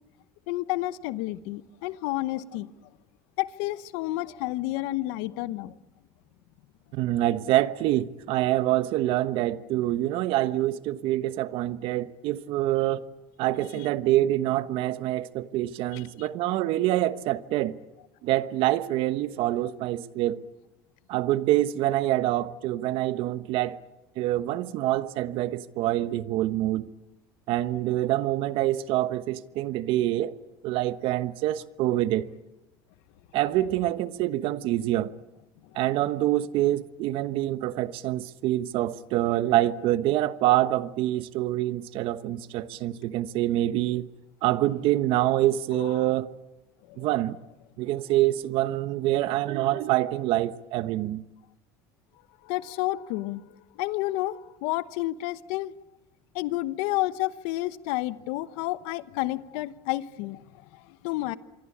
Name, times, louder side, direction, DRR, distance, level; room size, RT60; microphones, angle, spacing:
voice 1, 0.5-2.7 3.4-5.7 13.8-13.9 15.9-16.3 35.6-35.8 45.7-46.0 46.9-47.1 52.4-55.7 56.3-61.4, left 17 dB, 80° left, 1.0 m, -31 dB
voice 2, 6.9-13.1 13.4-17.8 18.2-20.4 21.1-23.8 24.2-26.9 27.5-30.4 30.6-32.3 33.3-35.1 35.7-44.1 44.4-46.3 47.0-47.4 47.8-51.2, right 14 dB, 70° right, 1.2 m, -26 dB
26.5 x 23.5 x 8.7 m
supercardioid pair, 100°, 10 cm